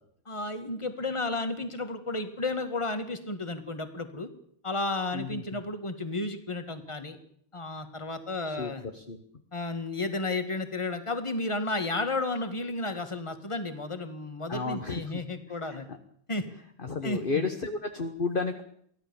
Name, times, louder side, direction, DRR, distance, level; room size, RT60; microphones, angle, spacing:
voice 1, 0.2-4.3 4.6-7.2 7.5-8.8 9.5-15.9 16.3-16.4 17.0-17.4, left 2 dB, 15° left, 8 dB, 1.7 m, -32 dB
voice 2, 5.1-5.6 8.4-9.2 14.5-15.0 15.6-15.8 16.8-18.6, left 4 dB, 30° left, 6 dB, 1.1 m, -32 dB
24.0 x 16.0 x 7.1 m, 0.65 s
omnidirectional pair, 2.4 m